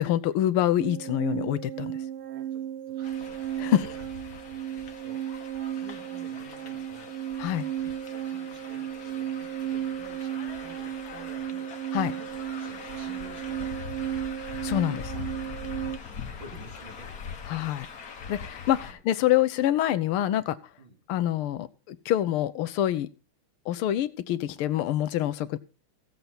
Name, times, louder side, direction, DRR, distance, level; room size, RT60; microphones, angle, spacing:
voice 1, 0.0-2.0 3.6-3.9 7.4-7.7 11.9-12.1 14.6-15.1 17.5-17.9 18.3-20.6 21.1-23.1 23.7-25.6, left 12 dB, 80° left, 14 dB, 1.6 m, -26 dB
sound 1, 0.8-16.0, right 10 dB, 85° right, 1.9 m, -34 dB
voice 2, 2.5-4.1 4.7-5.3 5.8-7.1 7.8-11.7 12.1-14.4 16.0-17.2 18.9-19.0 20.8-21.0 25.4-25.5, right 2 dB, 60° right, 1 dB, 4.0 m, -51 dB
sound 2, 3.0-18.9, left 6 dB, 45° left, 1.5 m, -42 dB
15.0 x 8.0 x 4.1 m, 0.35 s
omnidirectional pair, 2.4 m